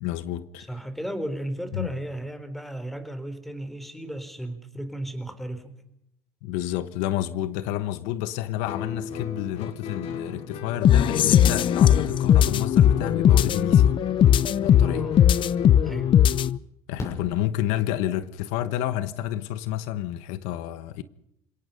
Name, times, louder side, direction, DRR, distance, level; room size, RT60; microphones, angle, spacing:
voice 1, 0.0-0.7 1.7-1.9 6.4-14.0 14.6-15.1 16.9-21.0, left 13 dB, 85° left, 1.2 m, -30 dB
voice 2, 0.7-5.8 14.8-15.2 15.8-16.2, right 1 dB, ahead, 3.9 m, -34 dB
Guitar, 8.6-16.1, left 5 dB, 60° left, 4.1 m, -37 dB
sound 1, 10.8-16.6, left 10 dB, 45° left, 0.8 m, -19 dB
Fireworks, 17.0-18.3 20.1-20.2 20.4-20.5, left 2 dB, 25° left, 7.0 m, -39 dB
28.5 x 17.5 x 5.4 m
cardioid pair, 115°, 12 cm